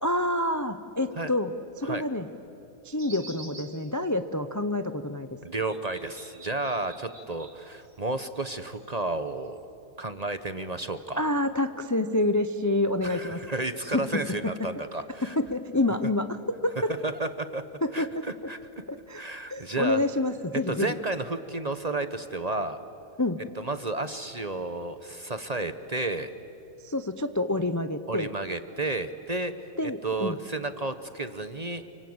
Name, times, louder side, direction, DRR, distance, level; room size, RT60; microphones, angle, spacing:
voice 1, 0.0-2.3 2.8-5.3 11.2-13.4 13.9-14.0 15.2-16.9 17.8-18.2 19.1-19.2 19.5-21.0 23.2-23.4 26.8-28.3 29.8-30.4, left 2 dB, 20° left, 10 dB, 0.6 m, -27 dB
sound 1, 3.0-3.9 5.7-8.1 8.4-9.6, right 3 dB, 50° right, 3.2 m, -48 dB
voice 2, 5.4-9.6 10.0-11.2 13.0-15.4 17.0-17.6 17.9-18.6 19.1-20.0 20.7-22.8 23.6-26.3 28.1-31.8, right 2 dB, 35° right, 10 dB, 0.9 m, -32 dB
29.0 x 24.5 x 8.0 m, 2.9 s
omnidirectional pair, 1.5 m